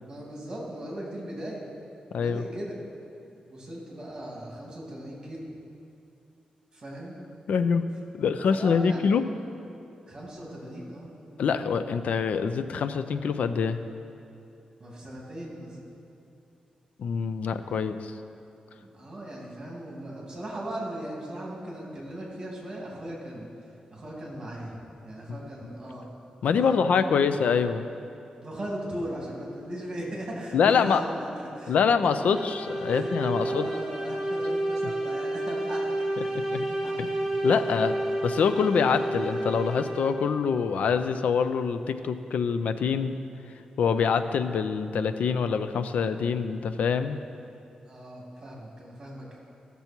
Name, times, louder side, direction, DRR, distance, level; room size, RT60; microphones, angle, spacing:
voice 1, 0.1-1.6 2.1-2.8 3.5-5.4 6.7-7.2 8.5-9.1 10.1-11.1 14.8-15.8 18.7-23.5 23.9-24.8 25.0-26.1 26.6-27.4 28.4-31.8 32.2-32.3 32.9-35.9 36.2-36.3 36.7-36.9 47.8-49.4, right 1 dB, 30° right, -3 dB, 2.7 m, -38 dB
voice 2, 7.5-7.8 8.1-9.2 11.4-13.8 17.0-18.1 26.4-27.8 30.5-31.0 31.7-33.7 36.3-36.7 37.0-37.1 37.4-38.0 38.2-43.1 43.8-47.2, left 6 dB, 80° left, 10 dB, 0.5 m, -25 dB
sound 1, 32.0-40.4, right 1 dB, 5° right, 2.0 m, -30 dB
15.0 x 6.9 x 4.5 m, 2.7 s
wide cardioid pair, 120°, 2 cm